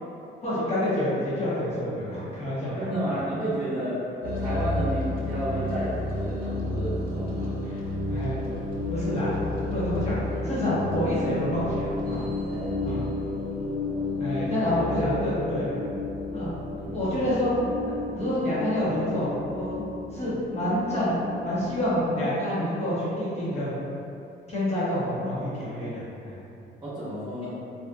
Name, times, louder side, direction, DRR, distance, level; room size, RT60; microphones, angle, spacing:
voice 1, 0.4-2.9 7.6-7.8 8.1-8.4 8.9-12.3 12.8-13.0 14.2-15.8 16.3-16.5 16.9-17.5 17.8-19.8 20.1-21.2 21.4-23.7 24.5-26.4 27.4-27.5, left 1 dB, 35° left, -10 dB, 1.0 m, -28 dB
voice 2, 2.6-5.9 6.2-7.5 12.5-12.7 16.7-17.0 26.8-27.5, equal, 20° right, -14 dB, 1.0 m, -31 dB
sound 1, 4.2-22.3, left 2 dB, 50° right, 0.5 m, -32 dB
2.6 x 2.3 x 2.2 m, 2.7 s
cardioid pair, 90°, 20 cm